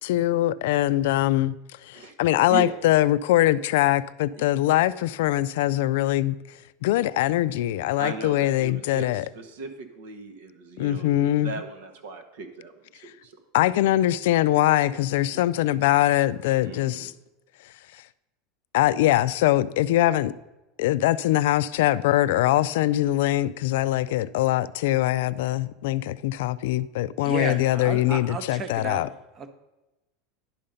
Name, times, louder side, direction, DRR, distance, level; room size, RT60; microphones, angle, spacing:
voice 1, 0.0-1.6 1.8-6.3 6.8-9.2 10.8-11.5 13.5-17.1 18.7-20.3 20.8-29.1, left 14 dB, 75° left, 0.3 m, -22 dB
voice 2, 8.0-12.7 13.0-13.4 14.9-15.0 15.3-15.4 16.6-17.1, right 4 dB, 80° right, 1.2 m, -37 dB
voice 3, 27.2-29.1 29.3-29.5, right 5 dB, 30° right, 0.8 m, -33 dB
10.5 x 5.6 x 5.1 m
supercardioid pair, 155°, 0 cm